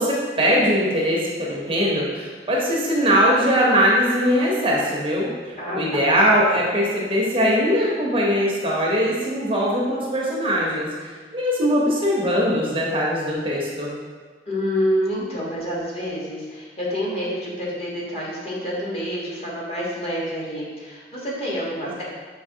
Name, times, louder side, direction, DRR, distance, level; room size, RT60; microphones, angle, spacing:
voice 1, 0.0-13.9, equal, 30° right, -4 dB, 0.7 m, -21 dB
voice 2, 5.6-6.1 14.5-22.0, equal, 35° left, -6 dB, 1.1 m, -28 dB
5.8 x 2.9 x 2.7 m, 1.5 s
head